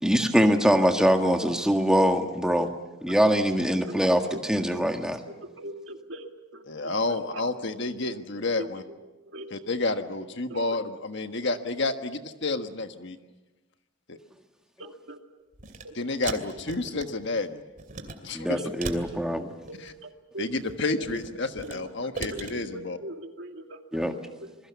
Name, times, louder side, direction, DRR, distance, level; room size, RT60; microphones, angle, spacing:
voice 1, 0.0-2.7 3.0-5.2 18.3-19.5 23.9-24.1, equal, 5° right, 4 dB, 1.7 m, -23 dB
voice 2, 3.2-4.0 4.3-4.4 5.3-7.5 8.6-8.7 9.3-9.5 9.8-10.0 10.5-10.8 14.8-15.2 15.8-16.0 18.6-18.7 19.7-20.5 21.0-21.1 21.6-24.6, right 1 dB, 60° right, 5 dB, 2.3 m, -42 dB
voice 3, 6.7-8.8 9.5-13.2 14.1-14.2 15.9-17.6 18.2-18.6 19.8-19.9 20.4-23.0, left 3 dB, 55° left, 8 dB, 1.4 m, -30 dB
sound 1, 15.5-15.8 16.2-17.4 17.8-18.2 18.8-20.0 20.5-21.8 22.1-22.5, right 3 dB, 40° right, 2.7 m, -38 dB
27.5 x 21.5 x 7.0 m, 1.1 s
head